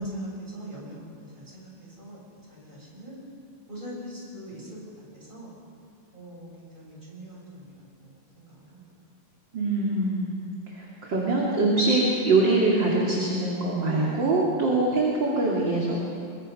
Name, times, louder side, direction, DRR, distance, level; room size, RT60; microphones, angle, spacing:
voice 1, 0.0-2.2 2.5-3.2 3.7-4.8 5.1-5.5 6.1-7.7 8.0-8.9 14.6-14.7, equal, 10° right, -4 dB, 7.3 m, -43 dB
voice 2, 9.5-10.3 10.7-16.0, right 2 dB, 35° right, -3 dB, 2.9 m, -23 dB
27.5 x 22.5 x 5.6 m, 2.4 s
omnidirectional pair, 4.2 m